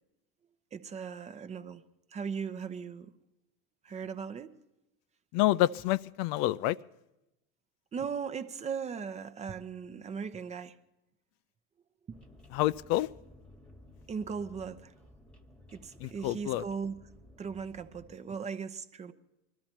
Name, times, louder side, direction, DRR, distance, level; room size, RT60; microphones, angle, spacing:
voice 1, 0.7-1.8 2.1-3.1 3.8-4.5 7.9-10.8 12.1-12.2 14.1-14.9 15.7-17.0 17.4-19.1, right 6 dB, 20° right, 0.7 m, -38 dB
voice 2, 5.3-6.8 12.5-13.1 16.0-16.6, left 15 dB, 55° left, 0.4 m, -28 dB
sound 1, 12.1-18.2, left 1 dB, 5° left, 1.3 m, -56 dB
21.0 x 13.0 x 4.4 m
supercardioid pair, 125°, 31 cm